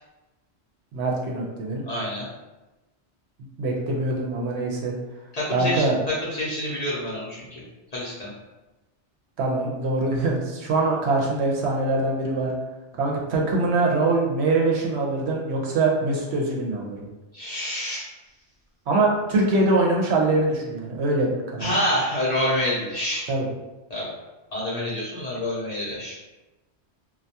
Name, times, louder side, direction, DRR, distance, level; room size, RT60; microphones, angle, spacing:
voice 1, 0.9-1.8 3.6-5.0 5.5-6.0 9.4-12.5 13.0-17.1 18.9-21.7 23.3-23.5, right 2 dB, 75° right, -1 dB, 0.8 m, -23 dB
voice 2, 1.9-2.3 5.3-7.6 7.9-8.3 17.3-18.1 21.6-23.3 23.9-24.1 24.5-26.2, left 1 dB, 45° left, -8 dB, 0.6 m, -27 dB
2.2 x 2.2 x 2.7 m, 1.1 s
omnidirectional pair, 1.2 m